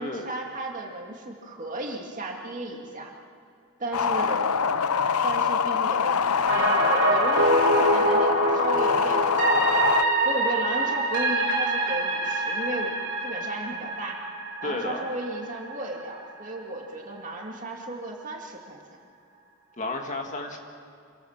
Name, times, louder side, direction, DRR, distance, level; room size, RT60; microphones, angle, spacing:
voice 1, 0.0-3.1 3.8-4.7 5.2-12.9 13.2-14.2 14.6-18.8, right 1 dB, 35° right, 1 dB, 2.5 m, -35 dB
sound 1, 3.9-10.0, left 6 dB, 90° left, 0.7 m, -24 dB
sound 2, 6.5-16.5 16.8-16.9, right 2 dB, 55° right, 3.3 m, -25 dB
voice 2, 14.6-15.1 19.8-20.6, left 2 dB, 35° left, 3 dB, 1.9 m, -32 dB
27.0 x 18.5 x 7.4 m, 2.5 s
head